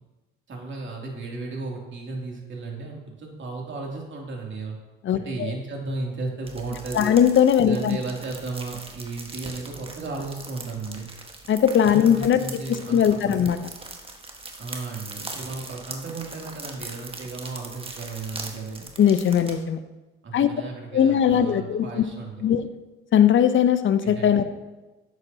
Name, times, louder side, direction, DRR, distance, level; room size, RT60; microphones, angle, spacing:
voice 1, 0.5-4.8 5.1-7.1 7.6-11.1 12.0-13.4 14.6-18.9 20.2-22.4 24.0-24.4, right 3 dB, 40° right, -1 dB, 2.8 m, -34 dB
voice 2, 5.0-5.5 6.9-8.0 11.5-12.6 12.9-13.6 19.0-19.8 20.3-20.5 20.9-22.0 22.4-22.7 23.1-24.4, left 9 dB, 45° left, 12 dB, 0.8 m, -19 dB
sound 1, 6.4-19.5, right 2 dB, 20° right, 1.5 m, -40 dB
11.5 x 8.0 x 2.8 m, 1.1 s
hypercardioid pair, 65°, 29 cm